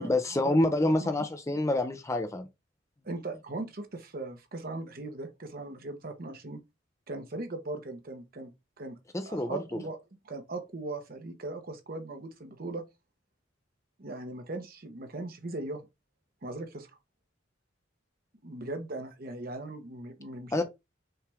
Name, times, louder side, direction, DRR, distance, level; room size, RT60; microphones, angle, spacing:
voice 1, 0.0-2.5 9.1-9.8 20.5-20.6, left 1 dB, 15° left, 0.5 m, -27 dB
voice 2, 3.0-6.6 7.1-8.5 8.8-9.0 9.3-10.0 10.2-12.8 14.0-15.9 16.4-16.9 18.4-20.6, right 2 dB, 50° right, 0.9 m, -39 dB
5.6 x 2.5 x 3.4 m
head